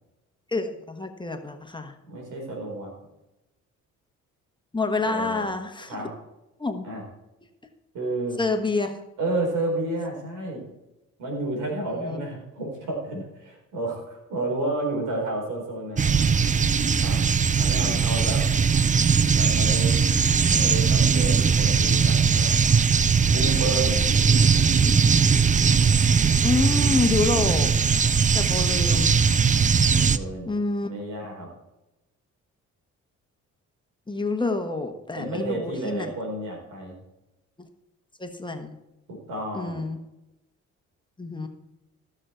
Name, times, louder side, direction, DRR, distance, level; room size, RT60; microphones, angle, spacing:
voice 1, 0.5-2.0 4.7-5.9 6.6-6.8 8.4-9.0 11.9-12.2 17.9-18.0 26.4-28.0 28.3-29.2 30.5-30.9 34.1-36.1 37.6-37.7 38.2-38.8 39.5-40.0 41.2-41.5, left 3 dB, 15° left, 5 dB, 1.4 m, -27 dB
voice 2, 2.0-2.9 5.0-5.5 5.9-6.1 6.8-7.0 7.9-8.4 9.2-10.6 11.2-16.2 17.0-17.2 17.6-18.4 19.3-20.1 20.5-22.8 23.3-24.0 28.5-28.7 29.9-30.5 30.8-31.5 35.2-36.9 39.1-39.8, right 2 dB, 90° right, 0 dB, 4.4 m, -31 dB
sound 1, 16.0-30.2, right 6 dB, 25° right, 0.5 m, -20 dB
15.0 x 6.5 x 4.4 m, 0.96 s
cardioid pair, 90°, 30 cm